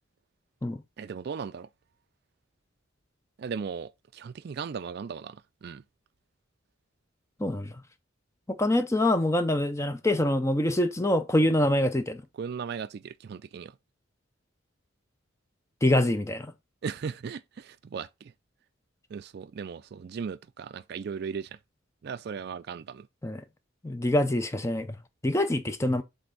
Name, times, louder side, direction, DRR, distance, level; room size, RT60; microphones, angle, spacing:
voice 1, 1.0-1.7 3.4-5.8 12.4-13.7 16.8-18.1 19.1-21.5 22.0-23.1, right 6 dB, 50° right, 0.3 m, -37 dB
voice 2, 7.4-7.7 8.5-12.2 15.8-16.5 23.2-23.4 23.8-25.0 25.2-26.0, left 1 dB, 15° left, 0.5 m, -25 dB
7.9 x 3.4 x 3.8 m
head